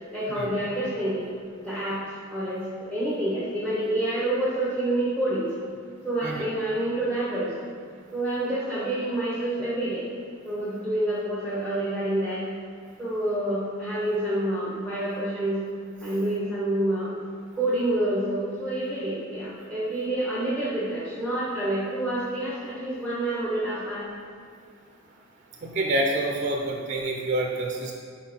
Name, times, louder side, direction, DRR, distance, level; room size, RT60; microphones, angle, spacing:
voice 1, 0.1-1.2 1.6-2.0 2.3-5.5 6.0-7.7 8.1-10.0 10.4-12.4 13.0-15.6 16.0-17.1 17.5-24.0, right 1 dB, 5° left, -10 dB, 1.1 m, -28 dB
voice 2, 25.6-27.9, right 1 dB, 40° right, 1 dB, 0.5 m, -27 dB
5.6 x 4.3 x 4.4 m, 2.2 s
head